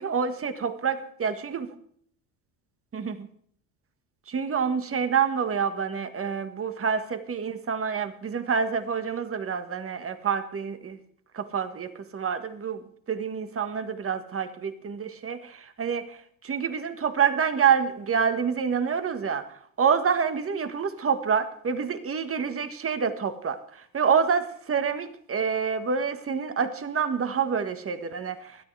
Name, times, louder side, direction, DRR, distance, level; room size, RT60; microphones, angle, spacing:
voice 1, 0.0-1.7 2.9-3.3 4.3-11.0 11.3-16.2 16.4-19.5 19.8-23.6 23.9-28.6, right 6 dB, 35° right, 9 dB, 1.5 m, -27 dB
20.5 x 12.5 x 3.4 m, 0.63 s
supercardioid pair, 90°, 40 cm